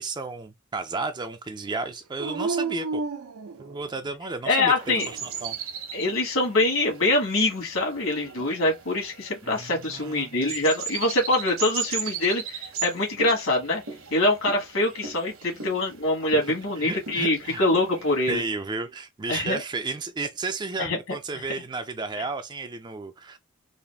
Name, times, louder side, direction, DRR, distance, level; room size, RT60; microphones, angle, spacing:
voice 1, 0.0-3.0 3.6-5.6 9.4-10.6 16.8-17.6 18.3-23.4, right 3 dB, 20° right, 0.4 m, -33 dB
Dog, 2.2-4.1 4.7-5.5 7.8-8.6, right 4 dB, 85° right, 0.5 m, -33 dB
voice 2, 4.4-5.1 5.9-13.8 14.1-18.4 19.3-19.6 20.8-21.0 22.2-22.3, left 2 dB, 70° left, 1.7 m, -24 dB
sound 1, 4.8-18.3, right 6 dB, 65° right, 1.1 m, -38 dB
4.0 x 2.5 x 3.4 m
head